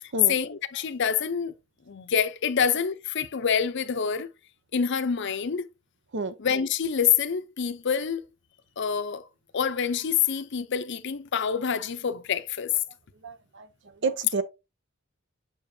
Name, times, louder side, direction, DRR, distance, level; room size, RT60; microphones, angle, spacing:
voice 1, 0.3-1.5 1.9-4.3 4.7-5.7 6.4-8.3 8.8-9.2 9.5-12.7, left 7 dB, 60° left, 0.6 m, -27 dB
voice 2, 13.2-13.7 14.0-14.4, right 4 dB, 65° right, 0.7 m, -29 dB
7.0 x 5.8 x 2.7 m
head